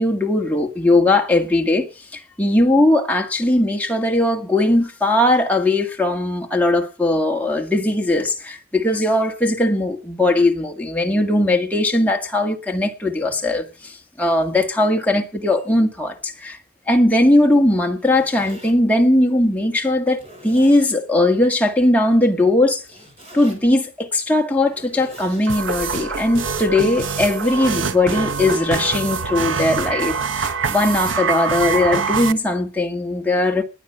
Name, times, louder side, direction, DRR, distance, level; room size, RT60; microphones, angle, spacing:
voice 1, 0.0-16.6 16.9-22.8 23.3-33.6, left 1 dB, 10° left, 1.8 m, -19 dB
Zipper (clothing), 17.8-18.7 19.4-19.5 20.1-21.0 22.8-23.6 24.6-25.5 27.0-27.9 28.7-29.8, equal, 30° right, 6.2 m, -43 dB
sound 1, 25.5-32.3, right 5 dB, 80° right, 1.0 m, -24 dB
20.0 x 9.4 x 5.8 m
head